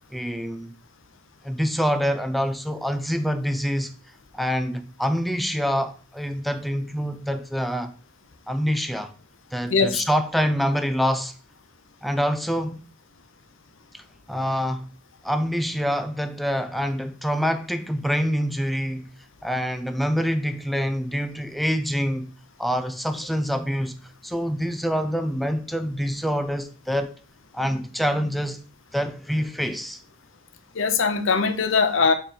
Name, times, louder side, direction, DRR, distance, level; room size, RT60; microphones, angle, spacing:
voice 1, 0.1-0.7 1.4-3.9 4.3-7.9 8.5-9.1 9.5-11.3 12.0-12.8 13.9-14.0 14.3-14.9 15.2-19.1 19.4-22.3 22.6-23.9 24.2-27.1 27.5-28.6 28.9-30.0, equal, ahead, 0.5 m, -26 dB
voice 2, 9.7-10.0 30.7-32.1, left 5 dB, 75° left, 0.8 m, -21 dB
4.6 x 4.4 x 5.1 m
head